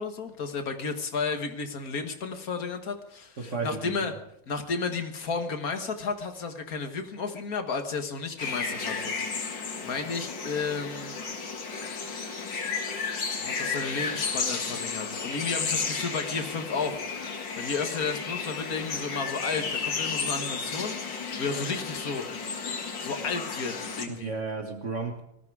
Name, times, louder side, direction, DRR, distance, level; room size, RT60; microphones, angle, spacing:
voice 1, 0.0-4.1 4.5-9.2 9.8-11.2 13.4-17.0 17.6-22.6 23.0-24.3, left 4 dB, 50° left, 6 dB, 2.0 m, -32 dB
voice 2, 3.4-4.1 24.1-25.2, right 4 dB, 40° right, 4 dB, 1.6 m, -33 dB
sound 1, 8.4-24.0, left 5 dB, 65° left, 2.6 m, -33 dB
19.5 x 14.5 x 4.8 m, 0.77 s
omnidirectional pair, 2.1 m